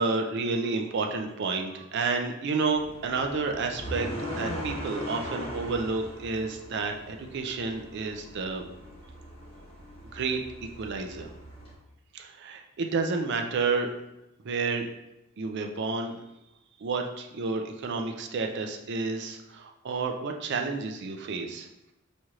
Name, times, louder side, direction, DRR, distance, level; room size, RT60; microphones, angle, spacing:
voice 1, 0.0-8.6 10.1-10.4 10.8-11.3 12.1-13.9 14.4-14.9 15.4-16.2 16.8-21.9, right 4 dB, 55° right, 4 dB, 0.4 m, -30 dB
sound 1, 2.8-11.7, equal, 25° left, 1.2 m, -40 dB
4.2 x 3.1 x 2.4 m, 0.91 s
head